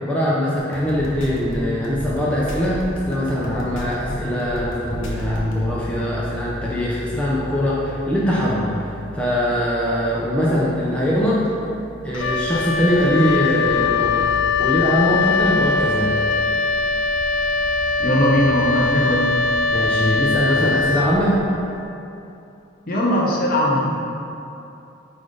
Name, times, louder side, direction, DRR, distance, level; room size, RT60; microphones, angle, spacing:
voice 1, 0.0-11.4 12.0-14.3 14.6-16.2 19.7-21.4, equal, 5° left, -7 dB, 0.7 m, -22 dB
sound 1, 0.6-5.7, equal, 90° left, 1.1 m, -32 dB
sound 2, 4.9-14.7, left 2 dB, 65° right, 0.6 m, -38 dB
Wind instrument woodwind instrument, 12.1-21.6, left 4 dB, 70° left, 0.4 m, -21 dB
voice 2, 18.0-19.3 22.9-23.9, equal, 50° left, -3 dB, 0.8 m, -19 dB
8.9 x 3.4 x 4.0 m, 2.8 s
head